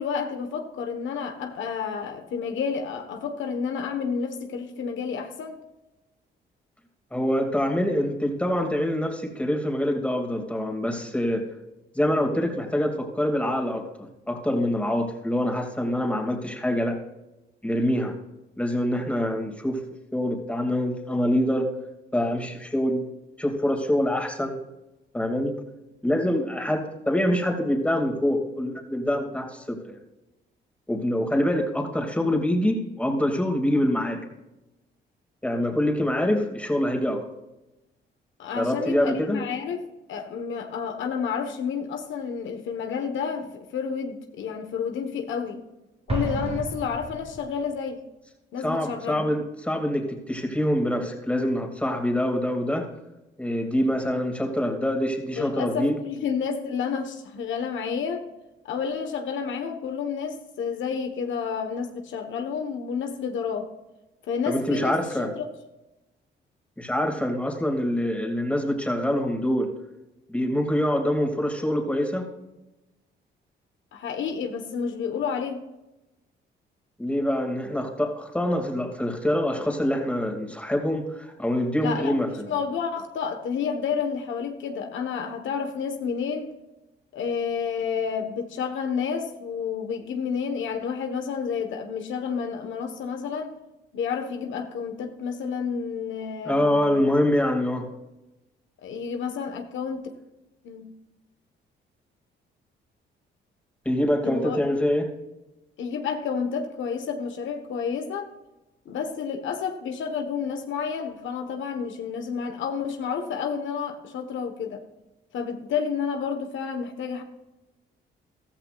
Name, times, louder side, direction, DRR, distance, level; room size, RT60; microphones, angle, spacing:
voice 1, 0.0-5.6 38.4-39.8 40.1-45.6 46.1-48.0 48.5-49.2 55.4-58.3 58.6-63.7 64.3-65.4 73.9-75.6 81.8-86.5 87.1-93.6 93.9-97.0 98.8-100.1 100.6-100.9 104.2-104.6 105.8-108.3 108.8-114.8 115.3-117.2, left 6 dB, 75° left, 5 dB, 1.4 m, -30 dB
voice 2, 7.1-11.4 11.9-17.0 17.6-18.1 18.6-19.8 20.1-21.7 22.1-23.1 23.4-24.6 25.1-25.5 26.0-30.0 30.9-34.2 35.4-37.2 38.5-39.4 48.6-52.9 53.4-56.0 64.5-65.3 66.8-69.7 70.3-72.3 77.0-82.6 96.4-97.9 103.8-105.1, left 1 dB, 5° left, 2 dB, 2.5 m, -25 dB
Explosion, 46.1-47.7, right 1 dB, 30° right, 2.3 m, -31 dB
14.5 x 13.5 x 2.5 m, 0.99 s
cardioid pair, 90°, 20 cm